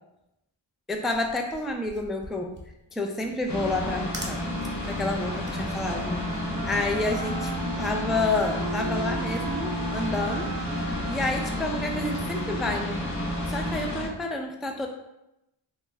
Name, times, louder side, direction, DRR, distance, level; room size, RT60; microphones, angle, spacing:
voice 1, 0.9-2.5 2.9-4.5 4.8-6.3 6.6-7.5 7.8-10.5 11.1-13.0 13.5-14.9, left 2 dB, ahead, 2 dB, 0.3 m, -29 dB
sound 1, 1.0-7.6, right 1 dB, 20° right, 0.8 m, -45 dB
sound 2, 3.5-14.1, left 1 dB, 35° left, 0.7 m, -31 dB
Wind instrument woodwind instrument, 5.0-13.2, right 2 dB, 65° right, 0.6 m, -38 dB
3.6 x 2.3 x 3.1 m, 0.87 s
wide cardioid pair, 45°, 49 cm